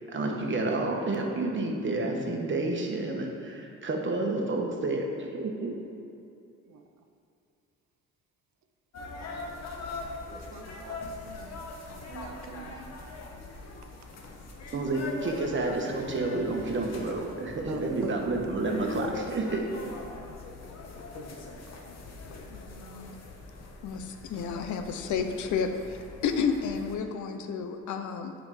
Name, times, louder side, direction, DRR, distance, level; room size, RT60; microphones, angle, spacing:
voice 1, 0.1-5.7 14.7-19.6, right 2 dB, 40° right, 1.3 m, -30 dB
sound 1, 8.9-27.0, left 3 dB, 60° left, 1.2 m, -42 dB
voice 2, 10.3-11.6 12.1-12.9 17.7-18.3 19.9-20.4 21.6-21.7, right 6 dB, 65° right, 0.8 m, -45 dB
voice 3, 22.5-23.1 23.8-28.3, left 6 dB, 80° left, 0.7 m, -32 dB
8.1 x 5.2 x 4.9 m
cardioid pair, 90°, 30 cm